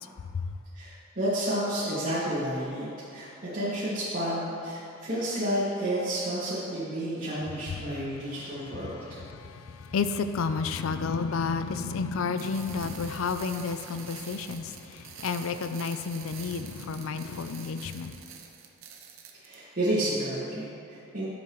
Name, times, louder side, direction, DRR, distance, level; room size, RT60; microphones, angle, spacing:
voice 1, 0.7-9.2 19.3-21.3, right 1 dB, 45° right, -11 dB, 2.0 m, -31 dB
voice 2, 9.3-18.2, left 5 dB, 80° left, 10 dB, 0.4 m, -31 dB
sound 1, 12.4-19.5, right 7 dB, 70° right, 0.8 m, -46 dB
11.5 x 7.4 x 3.1 m, 2.6 s
head